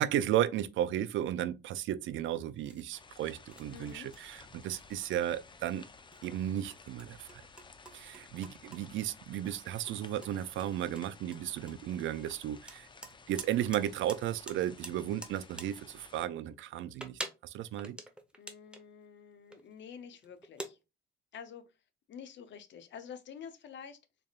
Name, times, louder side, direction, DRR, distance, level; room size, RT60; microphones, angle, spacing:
voice 1, 0.0-5.8 6.2-7.4 7.9-12.9 13.3-18.0, right 11 dB, 75° right, 0.4 m, -34 dB
sound 1, 2.5-2.9 3.5-4.4 4.7-5.3 5.6-5.8 6.1-8.8 9.2-9.3 9.8-9.9 10.2-12.0 12.7-13.8 14.1-14.2 14.5-15.7 16.6-18.9 19.5-19.8 20.2-20.7, right 1 dB, 5° right, 0.9 m, -46 dB
sound 2, 2.9-16.3, left 4 dB, 25° left, 0.5 m, -55 dB
voice 2, 3.7-4.1 18.4-20.8 21.3-21.8 22.1-24.0, left 7 dB, 65° left, 0.7 m, -48 dB
3.7 x 3.4 x 2.4 m
cardioid pair, 90°, 20 cm